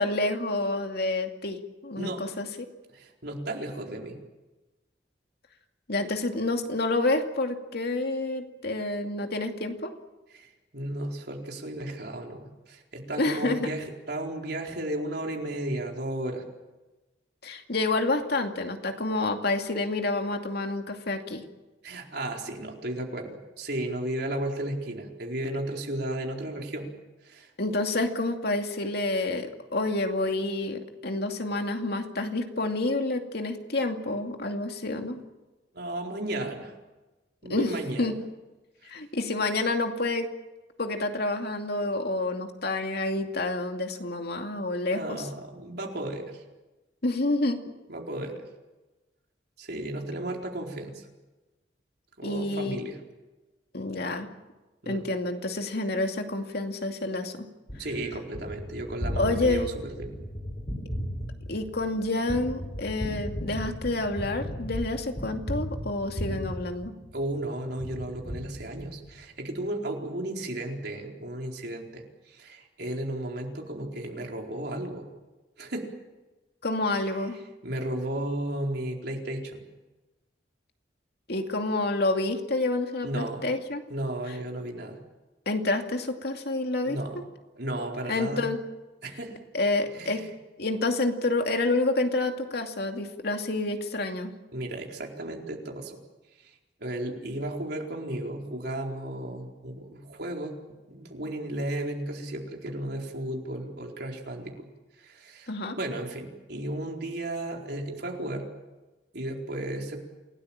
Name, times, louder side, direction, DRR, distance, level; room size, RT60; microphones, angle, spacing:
voice 1, 0.0-2.5 5.9-9.9 13.2-13.7 17.4-21.4 27.6-35.2 37.5-38.2 38.9-40.3 40.8-45.2 47.0-47.6 52.2-52.8 53.7-54.3 54.9-57.5 59.2-59.7 61.5-66.9 76.6-77.4 81.3-83.8 85.5-87.0 88.1-88.6 89.5-90.2 90.6-94.3 105.5-105.8, left 2 dB, 60° left, 4 dB, 2.5 m, -28 dB
voice 2, 2.9-4.2 10.3-16.4 21.8-26.9 27.2-27.5 35.7-36.7 37.4-38.2 38.8-38.9 44.9-46.4 47.9-48.4 49.6-51.0 52.2-53.0 54.8-55.1 57.8-60.1 67.1-75.1 75.6-75.9 76.9-77.0 77.6-79.6 83.0-83.4 83.9-85.0 86.8-87.2 87.6-88.5 89.0-89.4 89.9-90.3 94.5-96.0 96.4-100.5 100.9-104.5 105.0-105.5 105.8-108.5 109.1-110.0, right 1 dB, 65° right, 1 dB, 4.4 m, -34 dB
Gunshot gunfire, 57.7-67.4 67.8-69.2, equal, 40° left, 8.0 m, -35 dB
28.0 x 18.0 x 8.9 m, 1.1 s
head